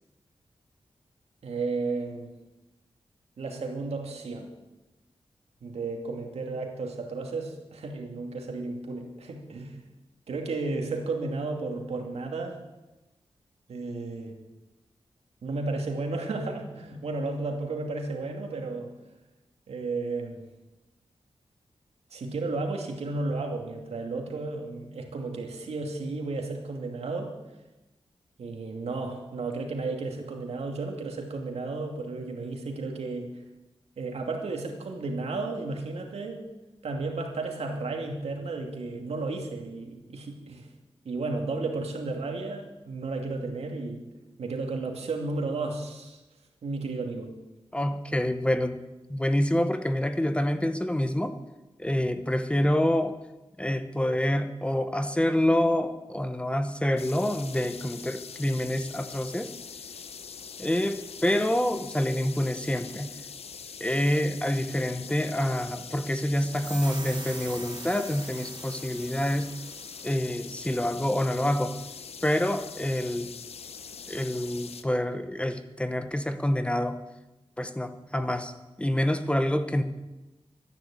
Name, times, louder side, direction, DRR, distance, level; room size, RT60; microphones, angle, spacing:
voice 1, 1.4-2.3 3.4-4.5 5.6-9.8 10.3-12.6 13.7-14.3 15.4-18.9 19.7-20.4 22.1-27.3 28.4-33.3 34.0-36.4 36.8-40.7 41.0-44.0 44.4-46.2 46.6-47.3, right 3 dB, 85° right, 2 dB, 2.6 m, -33 dB
voice 2, 47.7-48.8 49.1-51.4 51.8-53.1 53.6-59.5 60.6-63.1 63.8-69.5 70.0-71.7 72.2-73.3 74.1-77.0 77.6-78.5 78.8-79.8, left 1 dB, 10° left, 9 dB, 1.0 m, -27 dB
sound 1, 57.0-74.8, left 6 dB, 75° left, 0.9 m, -43 dB
sound 2, 66.5-70.2, right 4 dB, 45° right, 1.5 m, -43 dB
13.5 x 10.5 x 8.5 m, 1.0 s
wide cardioid pair, 115°, 10 cm